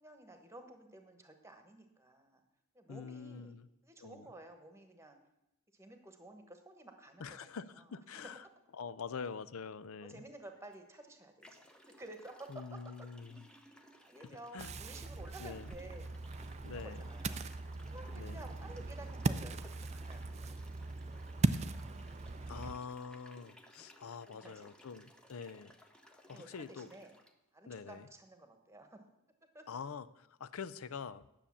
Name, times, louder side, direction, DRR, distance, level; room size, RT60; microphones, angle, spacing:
voice 1, 0.0-2.4 2.7-3.6 3.8-5.2 5.7-7.8 10.0-11.6 12.0-12.6 13.0-13.1 14.0-16.1 16.6-20.3 20.8-21.4 22.4-22.8 24.2-24.7 25.3-25.6 26.2-27.1 27.5-29.0 29.5-29.7, right 1 dB, 15° right, 6 dB, 1.2 m, -53 dB
voice 2, 2.9-3.7 4.0-4.3 7.2-8.5 8.8-10.2 12.5-13.5 14.5-14.7 15.4-15.7 16.6-17.0 18.2-18.4 22.5-25.7 26.1-26.9 27.7-28.1 29.7-31.2, left 5 dB, 75° left, 16 dB, 0.5 m, -45 dB
sound 1, 10.6-10.8 11.4-27.3, equal, 5° left, 0.7 m, -61 dB
Ocean, 14.6-22.7, right 2 dB, 30° right, 0.4 m, -38 dB
9.9 x 6.8 x 7.1 m, 0.90 s
head